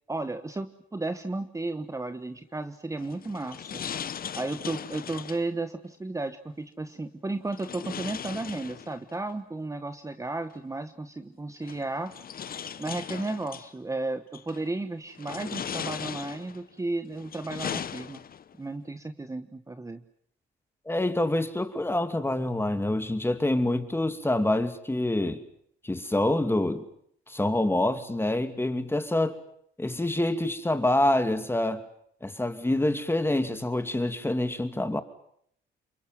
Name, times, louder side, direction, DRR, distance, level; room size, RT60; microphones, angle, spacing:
voice 1, 0.1-3.8 4.3-12.2 12.8-18.2 18.6-20.0, right 2 dB, 15° right, 10 dB, 1.3 m, -34 dB
sound 1, 3.0-5.5 7.5-9.2 10.5-10.6 11.6-13.7 14.3-14.7 15.1-16.6 17.1-18.5, left 8 dB, 50° left, 1.0 m, -38 dB
voice 2, 20.9-25.4 25.8-26.8 27.3-29.4 29.8-31.8 32.2-35.0, left 1 dB, 10° left, 9 dB, 2.6 m, -26 dB
28.0 x 24.0 x 7.7 m, 0.68 s
cardioid pair, 90°, 20 cm